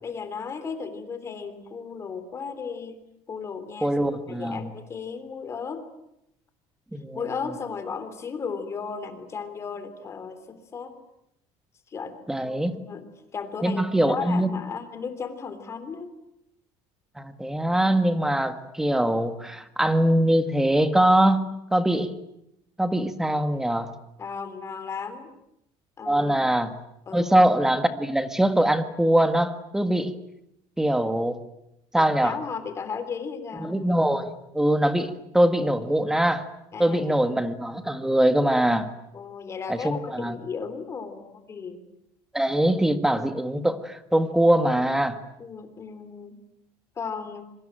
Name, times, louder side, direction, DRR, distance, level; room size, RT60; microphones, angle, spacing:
voice 1, 0.0-3.0 3.3-3.9 4.4-5.8 7.1-10.9 11.9-12.2 12.4-13.0 13.3-16.1 24.2-25.3 26.0-26.4 27.1-27.4 32.0-33.8 36.7-37.3 39.1-41.8 45.4-46.4 46.9-47.4, left 5 dB, 25° left, 10 dB, 3.4 m, -35 dB
voice 2, 3.8-4.6 6.9-7.2 12.3-12.8 13.6-14.5 17.2-22.1 22.8-23.9 26.1-26.7 27.1-30.1 30.8-31.4 31.9-32.4 33.6-36.5 36.8-38.9 39.7-40.3 42.3-45.2, right 1 dB, 5° right, 9 dB, 1.8 m, -22 dB
26.0 x 24.0 x 9.1 m, 0.82 s
cardioid pair, 160°, 11 cm